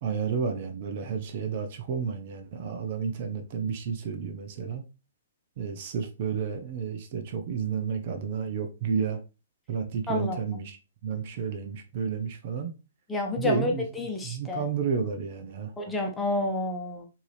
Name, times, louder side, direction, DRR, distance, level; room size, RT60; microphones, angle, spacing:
voice 1, 0.0-4.8 5.6-9.2 9.7-10.8 11.0-12.7 13.4-15.7, right 6 dB, 50° right, 0.7 m, -31 dB
voice 2, 10.1-10.4 13.1-14.6 15.8-17.1, left 2 dB, 10° left, 0.9 m, -29 dB
4.6 x 2.7 x 3.2 m
hypercardioid pair, 130°, 0 cm